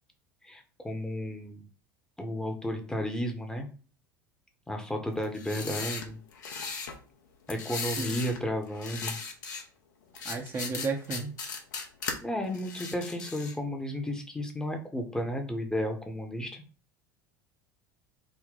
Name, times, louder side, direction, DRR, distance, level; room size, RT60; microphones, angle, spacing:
voice 1, 0.4-1.6 2.2-3.7 4.7-6.2 7.5-9.2 12.2-16.6, equal, 5° left, 4 dB, 0.8 m, -33 dB
sound 1, 5.2-7.0 7.5-8.4 8.7-9.6 10.2-12.2 12.5-13.6, left 5 dB, 65° left, 0.7 m, -37 dB
voice 2, 10.2-11.4, right 4 dB, 25° right, 2 dB, 0.6 m, -33 dB
3.6 x 2.1 x 4.1 m, 0.38 s
figure-of-eight pair, 75°, 11 cm